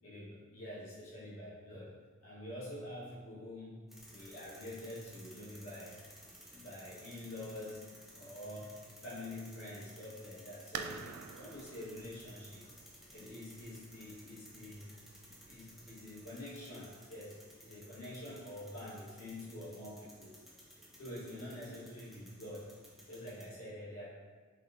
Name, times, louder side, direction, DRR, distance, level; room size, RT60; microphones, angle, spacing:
voice 1, 0.0-1.9 2.2-3.8 4.1-6.0 6.5-11.0 11.4-12.7 13.1-14.9 15.2-20.3 21.0-22.7 23.1-24.1, left 1 dB, 70° left, -9 dB, 1.4 m, -47 dB
sound 1, 3.9-23.4, equal, ahead, 0.7 m, -57 dB
sound 2, 10.7-16.2, right 6 dB, 70° right, 0.3 m, -48 dB
5.6 x 3.6 x 2.5 m, 1.5 s
head